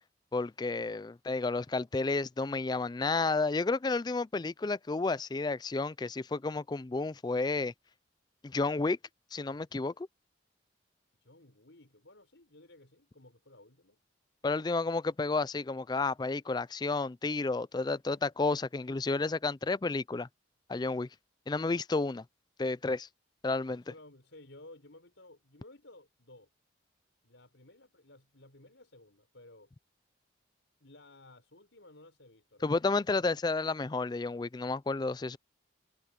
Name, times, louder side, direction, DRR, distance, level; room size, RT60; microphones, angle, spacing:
voice 1, 0.3-7.7 8.4-9.0 9.3-10.1 14.4-20.3 20.7-21.1 21.5-22.2 22.6-23.1 23.4-23.8 32.6-35.4, left 3 dB, 20° left, 0.4 m, -31 dB
voice 2, 11.2-14.0 23.7-26.5 27.2-29.7 30.8-32.9, left 2 dB, 80° left, 5.4 m, -56 dB
head